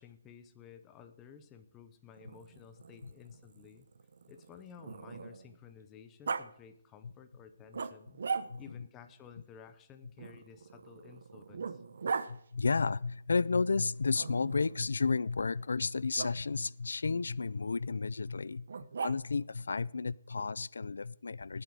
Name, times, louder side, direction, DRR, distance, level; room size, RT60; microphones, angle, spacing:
voice 1, 0.0-3.9 4.3-8.2 8.6-11.8, left 8 dB, 10° left, 8 dB, 0.7 m, -54 dB
Growling, 2.2-5.6 6.3-6.5 7.7-8.8 10.2-12.3 14.2-14.8 16.2-16.3 18.7-19.5, right 5 dB, 55° right, 0.9 m, -40 dB
voice 2, 12.3-18.7 19.0-21.6, left 4 dB, 85° left, 21 dB, 0.5 m, -32 dB
18.5 x 7.8 x 4.8 m, 0.70 s
hypercardioid pair, 175°, 0 cm